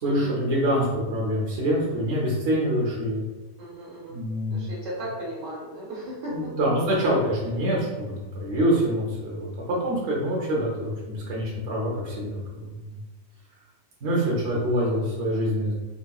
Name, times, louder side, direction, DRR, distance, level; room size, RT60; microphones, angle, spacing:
voice 1, 0.0-3.2 4.1-4.7 6.3-13.0 14.0-15.7, equal, 65° right, -4 dB, 1.0 m, -25 dB
voice 2, 3.6-4.2 4.5-6.5, equal, 80° right, -4 dB, 1.3 m, -35 dB
4.0 x 2.1 x 2.3 m, 1.1 s
omnidirectional pair, 1.3 m